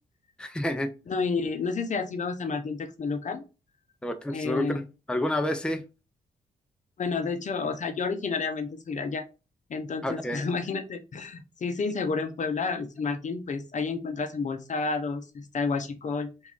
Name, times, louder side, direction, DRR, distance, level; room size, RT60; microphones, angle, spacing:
voice 1, 0.4-0.9 4.0-4.8 5.1-5.8 10.0-10.4, left 1 dB, 5° left, 0.5 m, -29 dB
voice 2, 1.1-3.4 4.3-4.8 7.0-9.2 9.7-16.5, left 4 dB, 50° left, 0.6 m, -30 dB
3.4 x 2.5 x 3.6 m
cardioid pair, 60°, 16 cm